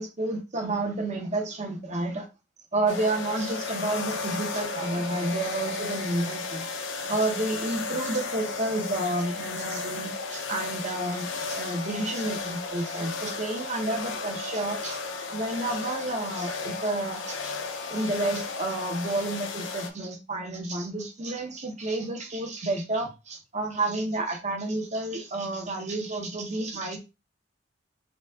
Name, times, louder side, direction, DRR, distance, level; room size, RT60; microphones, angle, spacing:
voice 1, 0.0-2.3 2.7-6.6 7.1-15.0 15.3-17.5 17.9-27.0, right 2 dB, 40° right, 1.0 m, -30 dB
sound 1, 2.9-19.9, left 4 dB, 80° left, 0.9 m, -34 dB
5.1 x 2.5 x 3.6 m
head